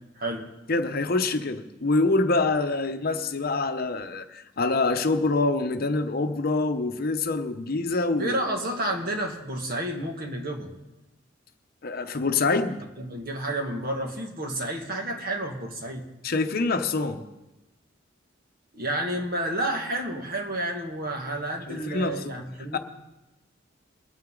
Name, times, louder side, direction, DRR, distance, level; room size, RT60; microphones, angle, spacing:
voice 1, 0.7-8.4 11.8-12.8 16.2-17.2 21.7-22.4 22.7-22.8, left 3 dB, 50° left, 0.8 m, -25 dB
voice 2, 8.2-10.7 13.0-16.1 18.7-22.8, right 1 dB, 50° right, 1.9 m, -30 dB
23.0 x 9.1 x 3.8 m
head